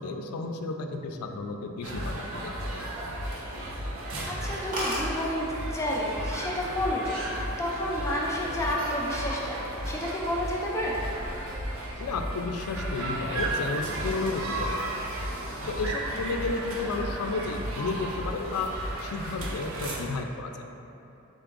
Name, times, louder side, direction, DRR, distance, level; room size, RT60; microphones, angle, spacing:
voice 1, 0.0-2.8 12.0-14.7 15.0-15.1 15.7-18.7 19.0-20.7, left 3 dB, 80° left, 5 dB, 0.4 m, -32 dB
sound 1, 1.8-20.0, right 1 dB, 65° right, 0.6 m, -34 dB
sound 2, 2.4-3.3 3.6-3.8 4.2-4.3 4.5-4.6 4.7-5.1 6.0-6.3 6.7-7.1, right 1 dB, 40° right, 0.9 m, -33 dB
voice 2, 4.3-9.6 9.8-11.0, left 1 dB, 15° left, -3 dB, 0.4 m, -30 dB
3.7 x 3.5 x 3.7 m, 3.0 s
head